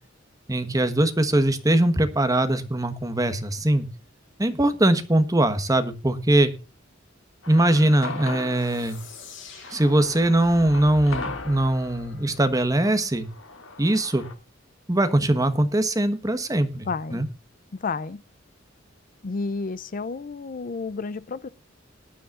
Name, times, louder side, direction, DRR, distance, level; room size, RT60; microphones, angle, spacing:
voice 1, 0.5-3.9 4.4-6.5 7.5-9.0 9.7-13.3 13.8-14.2 14.9-17.3, right 1 dB, 20° right, 9 dB, 1.3 m, -21 dB
sound 1, 7.4-14.3, left 3 dB, 85° left, 2.0 m, -39 dB
sound 2, 8.5-13.1, left 2 dB, 70° left, 6.6 m, -44 dB
voice 2, 16.9-17.2 17.8-18.2 19.2-21.5, left 4 dB, 45° left, 16 dB, 0.5 m, -31 dB
20.0 x 10.5 x 2.5 m, 0.31 s
head